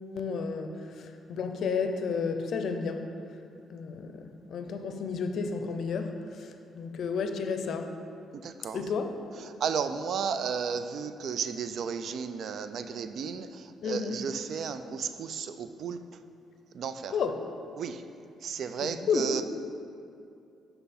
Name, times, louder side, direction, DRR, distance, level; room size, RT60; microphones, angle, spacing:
voice 1, 0.1-0.7 1.0-3.1 3.7-7.9 8.7-9.1 13.8-14.2 17.1-17.4 18.8-19.3, left 5 dB, 65° left, 6 dB, 0.5 m, -32 dB
voice 2, 9.6-13.5 13.9-16.0 16.8-17.1 17.8-17.9 18.4-19.4, right 6 dB, 65° right, 10 dB, 0.3 m, -33 dB
5.6 x 5.6 x 4.1 m, 2.6 s
cardioid pair, 90°, 0 cm